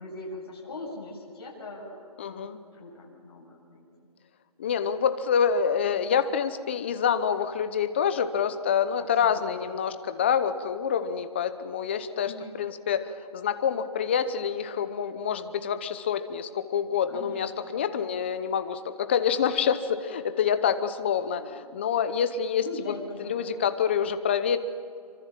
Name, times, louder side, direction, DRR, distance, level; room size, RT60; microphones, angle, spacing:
voice 1, 0.0-2.5 2.7-3.8 9.2-9.7 12.2-12.6 16.9-17.8 21.3-21.6 22.5-23.5, left 2 dB, 40° left, -4 dB, 7.9 m, -41 dB
voice 2, 2.2-2.6 4.6-22.9 23.2-24.6, left 7 dB, 20° left, 11 dB, 0.8 m, -27 dB
27.5 x 24.5 x 7.5 m, 2.3 s
hypercardioid pair, 170°, 20 cm